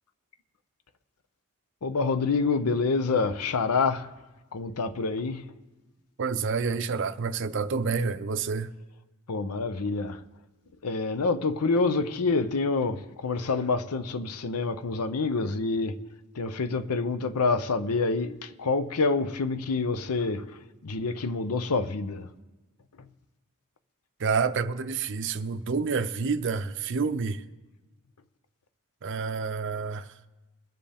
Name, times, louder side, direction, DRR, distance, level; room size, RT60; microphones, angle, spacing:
voice 1, 1.8-4.1 4.5-5.5 9.3-10.2 10.8-16.0 16.3-22.3 23.0-23.1, left 4 dB, 85° left, 0.7 m, -27 dB
voice 2, 6.2-8.7 24.2-27.4 29.0-30.1, right 5 dB, 55° right, 0.5 m, -28 dB
22.5 x 7.6 x 3.5 m
head